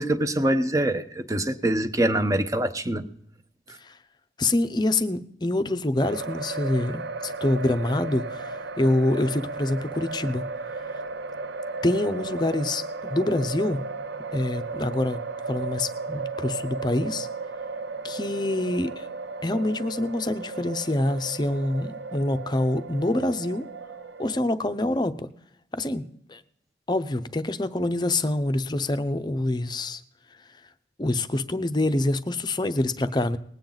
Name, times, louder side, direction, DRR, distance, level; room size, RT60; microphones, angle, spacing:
voice 1, 0.0-3.1, right 1 dB, 20° right, 9 dB, 0.7 m, -24 dB
voice 2, 4.4-10.4 11.8-13.8 14.3-15.2 15.5-17.3 18.0-19.1 19.4-23.7 24.2-25.3 25.7-26.0 26.3-26.4 26.9-30.0 31.0-33.4, left 1 dB, 25° left, 11 dB, 0.6 m, -26 dB
sound 1, 6.0-24.4, right 3 dB, 80° right, 0.6 m, -35 dB
20.0 x 8.8 x 3.9 m, 0.66 s
head